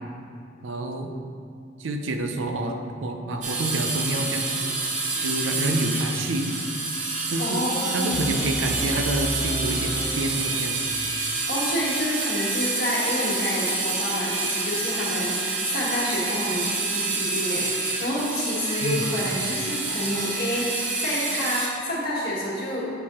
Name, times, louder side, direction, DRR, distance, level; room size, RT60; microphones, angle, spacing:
voice 1, 0.6-1.1 1.8-4.7 5.2-6.5 7.3-7.6 7.9-10.8 18.8-19.1, right 1 dB, 85° right, 5 dB, 0.5 m, -28 dB
sound 1, 3.4-21.7, right 3 dB, 40° right, 0.9 m, -28 dB
voice 2, 7.4-8.2 11.2-22.9, left 1 dB, 55° left, -5 dB, 1.4 m, -29 dB
sound 2, 8.1-11.2, equal, 10° right, 0.4 m, -34 dB
6.8 x 4.3 x 3.6 m, 2.4 s
head